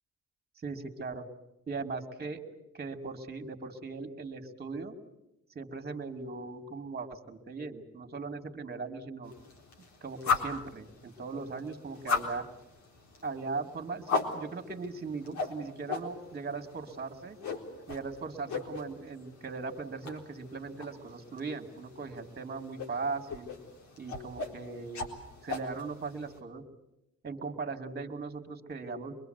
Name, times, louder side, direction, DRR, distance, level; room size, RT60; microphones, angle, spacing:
voice 1, 0.6-1.3 1.7-2.4 2.7-5.0 5.5-9.3 10.0-12.4 13.2-17.4 17.9-23.5 24.0-25.1 25.4-26.6 27.2-29.2, right 4 dB, 30° right, 5 dB, 2.8 m, -39 dB
sound 1, 9.2-26.4, left 4 dB, 70° left, 4.1 m, -38 dB
25.0 x 21.5 x 8.1 m, 0.90 s
cardioid pair, 90°, 30 cm